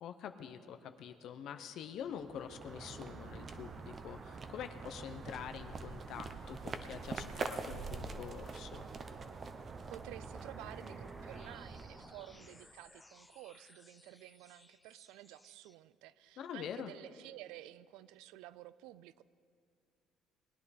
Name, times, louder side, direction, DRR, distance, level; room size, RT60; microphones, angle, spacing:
voice 1, 0.0-8.9 16.4-16.9, left 8 dB, 65° left, 8 dB, 0.7 m, -45 dB
sound 1, 2.0-12.7, right 4 dB, 35° right, 0.8 m, -45 dB
sound 2, 9.8-15.7, left 2 dB, 15° left, 0.5 m, -61 dB
voice 2, 9.9-19.2, right 15 dB, 85° right, 17 dB, 0.3 m, -52 dB
20.0 x 9.9 x 4.2 m, 2.2 s
cardioid pair, 100°, 0 cm